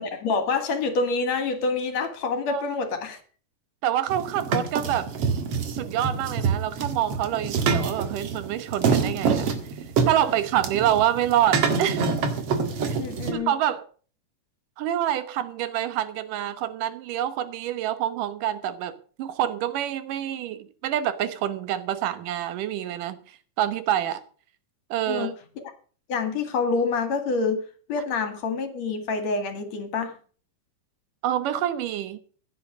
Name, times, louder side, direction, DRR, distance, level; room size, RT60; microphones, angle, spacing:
voice 1, 0.0-3.2 13.0-13.5 25.1-25.6 26.1-27.6 27.9-30.1, left 4 dB, 60° left, 9 dB, 3.0 m, -27 dB
voice 2, 3.8-5.1 5.7-9.5 10.1-12.1 12.8-13.0 13.3-13.8 14.8-24.2 24.9-25.3 31.2-32.2, right 11 dB, 85° right, 14 dB, 2.7 m, -27 dB
sound 1, 4.1-13.3, right 5 dB, 55° right, 2.4 m, -26 dB
16.0 x 9.0 x 6.2 m, 0.42 s
omnidirectional pair, 3.7 m